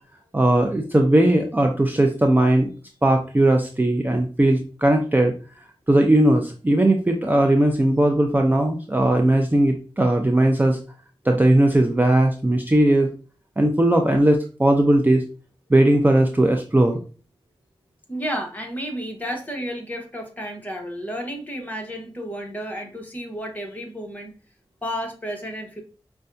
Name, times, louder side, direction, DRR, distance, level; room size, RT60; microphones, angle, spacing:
voice 1, 0.3-2.7 3.0-5.4 5.9-10.8 11.2-13.1 13.6-15.2 15.7-17.0, right 1 dB, 20° right, 3 dB, 0.5 m, -18 dB
voice 2, 18.1-24.3 24.8-25.8, equal, 15° left, 1 dB, 1.1 m, -32 dB
5.3 x 2.3 x 2.5 m, 0.37 s
wide cardioid pair, 55°, 10 cm